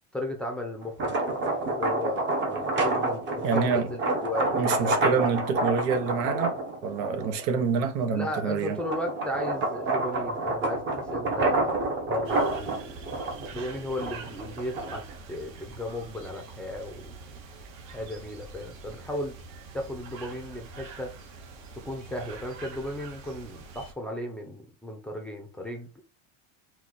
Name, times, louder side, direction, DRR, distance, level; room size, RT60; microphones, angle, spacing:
voice 1, 0.1-4.5 4.8-5.3 8.1-13.0 13.5-17.2 17.9-19.4 19.7-21.2 21.7-26.0, left 1 dB, 5° left, 0.6 m, -35 dB
sound 1, 0.8-7.4 8.0-15.1, right 2 dB, 30° right, 1.0 m, -28 dB
voice 2, 3.4-3.9 4.6-6.6 6.8-8.8, right 5 dB, 70° right, 1.1 m, -27 dB
sound 2, 12.2-23.9, right 4 dB, 55° right, 1.2 m, -45 dB
4.6 x 2.4 x 4.0 m
cardioid pair, 155°, 39 cm